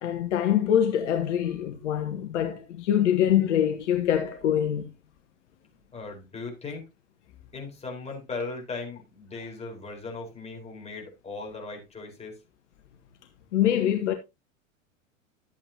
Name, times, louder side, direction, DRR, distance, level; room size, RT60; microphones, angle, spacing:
voice 1, 0.0-4.9 13.5-14.1, left 10 dB, 60° left, 1.4 m, -24 dB
voice 2, 5.9-6.9 7.5-12.4, left 3 dB, 15° left, 4.4 m, -38 dB
12.0 x 8.5 x 2.8 m
figure-of-eight pair, 90°, 40 cm